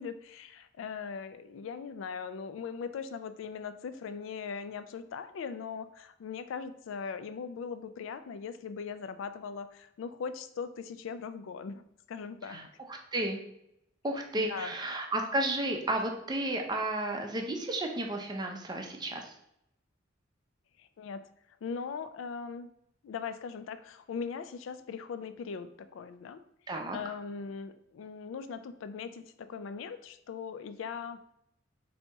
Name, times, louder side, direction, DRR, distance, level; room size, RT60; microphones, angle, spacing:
voice 1, 0.0-11.8 12.1-12.7 14.3-14.7 20.8-21.2 21.6-22.7 23.0-26.4 26.9-31.2, left 6 dB, 75° left, 12 dB, 0.3 m, -40 dB
voice 2, 12.5-13.4 14.0-19.3 26.7-27.0, right 1 dB, 20° right, 3 dB, 0.5 m, -33 dB
4.1 x 2.8 x 3.4 m, 0.77 s
head